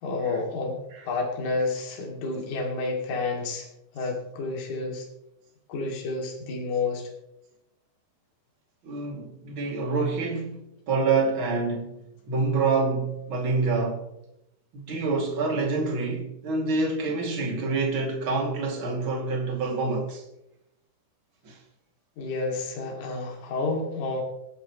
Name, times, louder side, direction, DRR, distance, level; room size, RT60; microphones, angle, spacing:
voice 1, 0.0-3.7 3.9-5.0 5.7-7.1 22.2-24.2, left 3 dB, 50° left, 3.6 m, -30 dB
voice 2, 8.8-12.0 12.3-14.1 14.7-20.2 21.4-21.6, right 3 dB, 35° right, 2.6 m, -27 dB
26.5 x 11.0 x 3.1 m
omnidirectional pair, 5.0 m